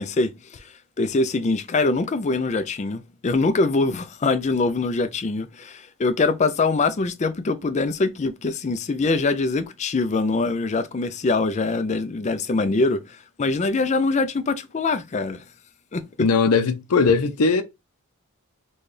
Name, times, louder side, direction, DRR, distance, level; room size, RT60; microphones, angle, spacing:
voice 1, 0.0-15.4 15.9-16.3, left 3 dB, 30° left, 0.4 m, -23 dB
voice 2, 16.2-17.6, left 4 dB, 80° left, 0.5 m, -19 dB
4.1 x 2.3 x 3.2 m
head